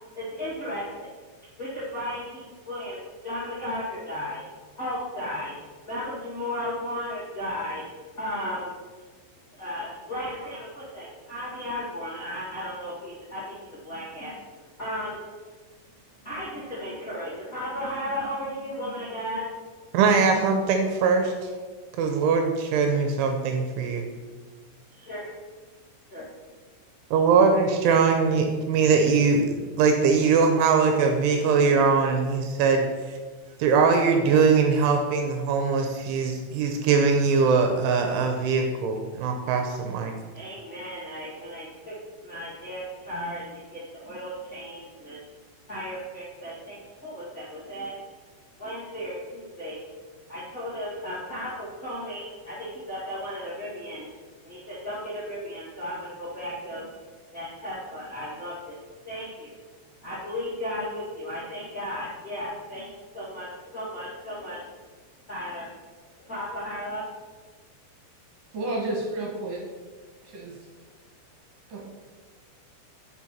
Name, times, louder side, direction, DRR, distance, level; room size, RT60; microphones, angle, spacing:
voice 1, 0.1-1.1 1.6-4.4 4.8-5.5 5.9-7.8 8.2-8.7 9.5-13.6 13.8-14.3 14.8-15.2 16.2-19.4 24.9-25.3 26.1-26.2 40.3-41.9 42.2-45.2 45.7-47.9 48.6-49.8 50.3-54.1 54.4-56.8 57.3-58.7 59.0-59.5 60.0-62.9 63.1-64.6 65.3-65.7 66.3-67.0, left 1 dB, 90° left, -9 dB, 0.7 m, -35 dB
voice 2, 19.9-21.3 22.0-24.1 27.1-32.9 33.6-40.1, right 5 dB, 80° right, 4 dB, 3.0 m, -21 dB
voice 3, 68.5-69.6 70.2-70.5 71.7-71.8, right 2 dB, 55° right, -3 dB, 2.6 m, -31 dB
7.5 x 6.5 x 5.6 m, 1.4 s
omnidirectional pair, 5.9 m